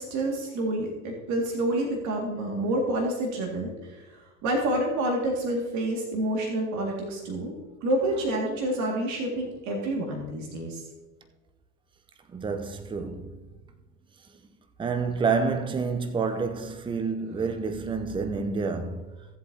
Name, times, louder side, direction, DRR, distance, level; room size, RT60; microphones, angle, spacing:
voice 1, 0.0-4.0 4.4-7.5 7.8-10.8, right 1 dB, 45° right, 2.2 m, -28 dB
voice 2, 12.3-13.4 14.8-19.0, right 5 dB, 10° right, 0.7 m, -28 dB
16.5 x 7.7 x 2.8 m
hypercardioid pair, 85°, 40 cm